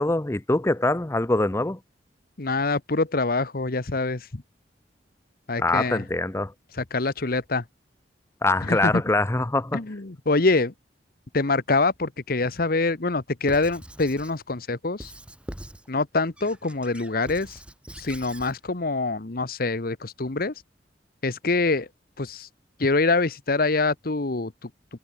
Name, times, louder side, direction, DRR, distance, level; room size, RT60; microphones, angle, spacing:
voice 1, 0.0-1.8 5.6-6.5 8.4-9.8, left 2 dB, 15° left, 0.7 m, -23 dB
voice 2, 2.4-4.4 5.5-6.0 6.7-7.6 8.6-9.0 9.7-10.7 11.3-15.1 15.9-17.6 18.0-20.5 21.2-21.9 22.2-22.5 22.8-24.7, left 3 dB, 55° left, 1.2 m, -25 dB
Squeak / Writing, 13.4-14.4 15.0-15.9 16.4-18.6, equal, 5° right, 2.4 m, -42 dB
head